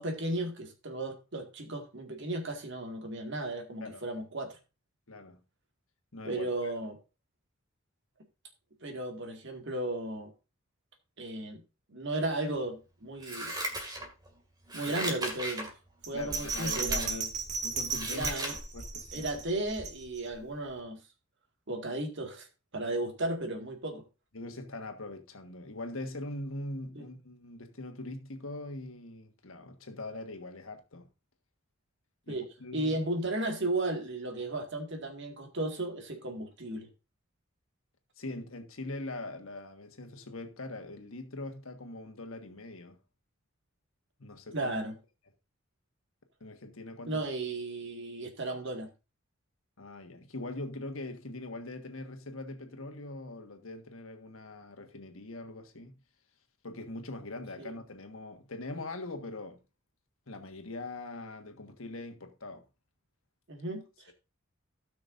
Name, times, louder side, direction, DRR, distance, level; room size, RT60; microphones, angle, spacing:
voice 1, 0.0-4.6 6.2-7.0 8.8-10.3 11.2-11.6 11.9-13.5 14.7-15.7 16.1-17.3 18.1-18.6 19.1-21.0 21.7-22.5 22.7-24.0 27.0-27.1 32.3-32.5 32.7-36.9 44.5-45.0 47.1-48.9 57.6-57.7 63.5-64.1, right 2 dB, 60° right, 2.1 m, -35 dB
voice 2, 5.1-5.4 6.1-6.7 14.8-14.9 16.1-18.3 18.7-19.3 24.3-31.1 32.3-33.0 38.2-43.0 44.2-44.7 46.4-47.3 49.8-56.0 56.6-59.6 60.3-62.6, left 2 dB, 75° left, 1.6 m, -42 dB
Scissors, 13.2-14.3 14.7-15.7 16.3-17.1 17.5-18.6 19.0-19.1, right 1 dB, 20° right, 2.2 m, -37 dB
Bell, 16.0-20.4 20.8-20.9, right 4 dB, 35° right, 2.1 m, -35 dB
17.0 x 6.1 x 2.6 m
head